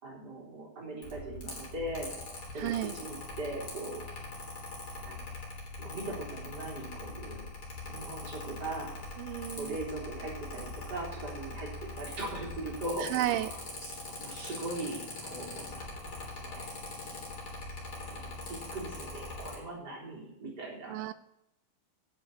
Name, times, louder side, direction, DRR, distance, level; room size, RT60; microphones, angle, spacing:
voice 1, 0.0-2.1 2.5-4.0 5.0-5.2 5.8-7.5 7.9-9.0 9.5-15.8 16.1-16.7 18.1-21.0, right 2 dB, 25° right, -2 dB, 4.0 m, -40 dB
Mechanical fan, 1.0-19.6, left 2 dB, 30° left, 3.8 m, -42 dB
voice 2, 2.6-2.9 9.2-9.8 13.0-13.5 20.9-21.1, right 13 dB, 80° right, 14 dB, 2.2 m, -32 dB
9.1 x 7.6 x 7.9 m, 0.81 s
omnidirectional pair, 4.3 m